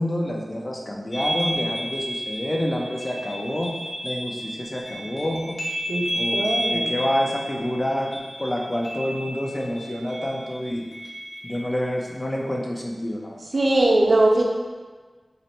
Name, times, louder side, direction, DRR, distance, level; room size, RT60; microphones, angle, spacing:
voice 1, 0.0-3.7 4.0-5.6 6.1-10.9 11.4-13.4, left 1 dB, 30° left, 0 dB, 0.6 m, -28 dB
sound 1, 1.1-12.5, equal, 65° left, 1.1 m, -32 dB
voice 2, 6.3-6.9 13.5-14.4, right 2 dB, 60° right, -1 dB, 0.6 m, -20 dB
4.0 x 2.1 x 4.2 m, 1.4 s
wide cardioid pair, 50°, 0 cm